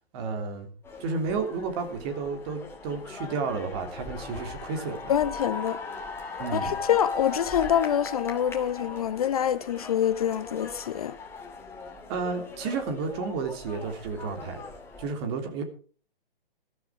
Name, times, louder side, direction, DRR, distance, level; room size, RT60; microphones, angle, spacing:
voice 1, 0.1-0.7 1.0-5.1 6.4-6.8 12.1-14.6 15.0-15.6, right 4 dB, 30° right, 3.1 m, -32 dB
sound 1, 0.8-15.1, left 4 dB, 10° left, 2.6 m, -39 dB
voice 2, 5.1-5.8 6.5-11.2, left 10 dB, 40° left, 0.7 m, -26 dB
14.0 x 13.0 x 4.8 m
figure-of-eight pair, 140°, 30 cm